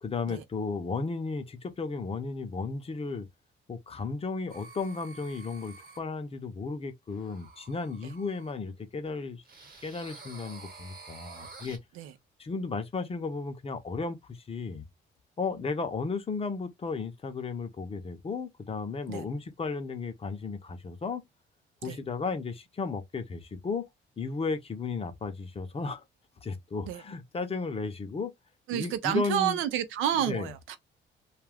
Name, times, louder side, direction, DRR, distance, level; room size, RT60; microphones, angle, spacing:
voice 1, 0.0-3.3 3.7-9.4 9.8-11.8 12.4-14.8 15.4-21.2 21.8-23.9 24.2-26.0 26.4-28.3 28.7-29.6 30.2-30.5, left 4 dB, 30° left, 0.6 m, -34 dB
sound 1, 4.5-6.0 7.1-8.5 9.4-11.8, right 4 dB, 50° right, 1.1 m, -49 dB
voice 2, 28.7-30.8, right 11 dB, 90° right, 0.5 m, -30 dB
2.3 x 2.2 x 3.3 m
cardioid pair, 90°, 20 cm